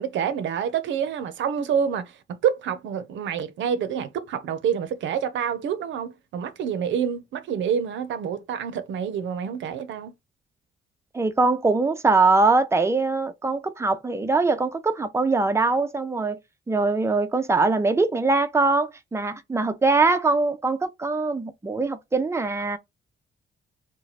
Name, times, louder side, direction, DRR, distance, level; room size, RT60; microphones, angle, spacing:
voice 1, 0.0-10.1, right 8 dB, 70° right, 0.6 m, -27 dB
voice 2, 11.1-16.4 16.7-22.8, right 3 dB, 15° right, 0.5 m, -22 dB
2.9 x 2.2 x 4.0 m
cardioid pair, 90°, 20 cm